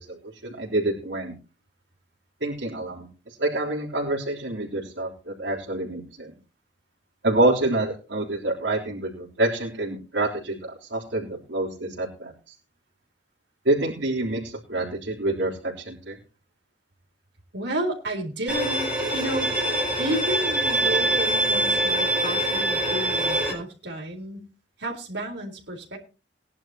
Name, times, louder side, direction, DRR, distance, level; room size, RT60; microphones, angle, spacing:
voice 1, 0.1-1.3 2.4-3.1 3.4-6.3 7.2-12.3 13.7-16.2, right 2 dB, 90° right, -3 dB, 3.5 m, -27 dB
voice 2, 17.5-19.5 20.0-24.5 24.8-26.0, right 1 dB, 70° right, 0 dB, 4.1 m, -31 dB
Bowed string instrument, 18.5-23.5, right 1 dB, 10° right, 4.7 m, -24 dB
19.5 x 11.0 x 3.0 m, 0.33 s
head